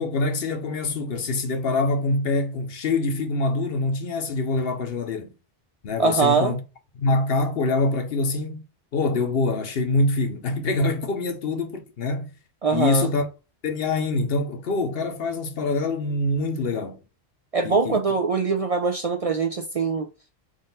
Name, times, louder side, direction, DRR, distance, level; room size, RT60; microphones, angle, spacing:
voice 1, 0.0-5.3 5.8-6.6 7.0-8.6 8.9-12.3 12.7-13.3 13.6-17.0 17.6-18.0, left 2 dB, 70° left, 1.0 m, -25 dB
voice 2, 6.0-6.5 12.6-13.1 17.5-20.1, right 4 dB, 50° right, 0.5 m, -22 dB
3.9 x 2.6 x 3.9 m
omnidirectional pair, 1.0 m